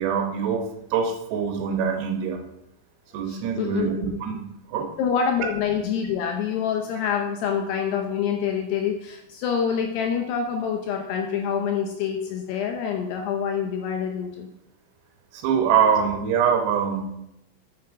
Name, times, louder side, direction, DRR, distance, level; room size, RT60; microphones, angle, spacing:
voice 1, 0.0-2.4 3.1-3.9 4.2-4.9 15.3-17.1, right 7 dB, 75° right, 4 dB, 2.8 m, -24 dB
voice 2, 3.3-3.9 5.0-14.5, left 7 dB, 80° left, 3 dB, 2.4 m, -26 dB
7.0 x 6.8 x 5.2 m, 0.84 s
omnidirectional pair, 5.6 m